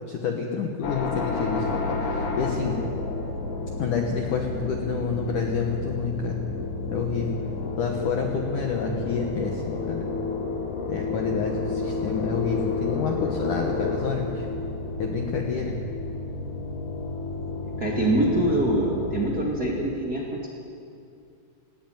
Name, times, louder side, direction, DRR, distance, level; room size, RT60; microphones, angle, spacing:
voice 1, 0.1-2.8 3.8-6.5 6.9-7.4 7.8-10.1 10.9-14.5 15.0-15.8, left 5 dB, 90° left, 2 dB, 1.8 m, -28 dB
sound 1, 0.8-19.2, left 3 dB, 50° left, 2.7 m, -31 dB
voice 2, 17.8-20.5, right 1 dB, 35° right, -3 dB, 1.6 m, -24 dB
18.0 x 18.0 x 9.3 m, 2.4 s
omnidirectional pair, 5.7 m